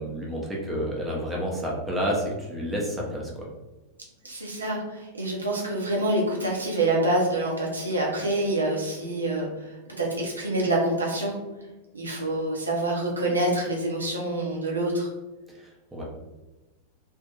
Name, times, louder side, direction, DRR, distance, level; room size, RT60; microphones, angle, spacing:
voice 1, 0.0-3.3 15.9-16.0, equal, 10° right, -3 dB, 0.7 m, -29 dB
voice 2, 4.2-11.3 11.9-15.1, right 1 dB, 80° right, -3 dB, 0.6 m, -26 dB
2.5 x 2.1 x 2.7 m, 1.1 s
figure-of-eight pair, 90°, 0 cm